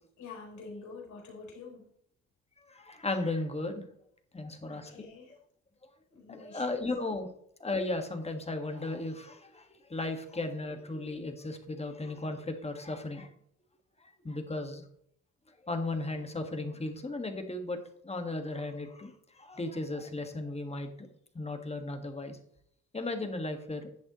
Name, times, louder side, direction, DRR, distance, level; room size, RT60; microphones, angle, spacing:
voice 1, 0.2-1.9 4.7-5.3 6.1-6.9, left 4 dB, 70° left, -1 dB, 4.1 m, -47 dB
voice 2, 2.7-3.8 4.3-5.1 6.3-7.3 7.6-13.3 14.2-14.8 15.6-17.8 18.0-21.1 21.3-22.4 22.9-23.9, left 2 dB, 20° left, 6 dB, 1.7 m, -35 dB
11.0 x 7.8 x 3.0 m, 0.68 s
cardioid pair, 90°, 30 cm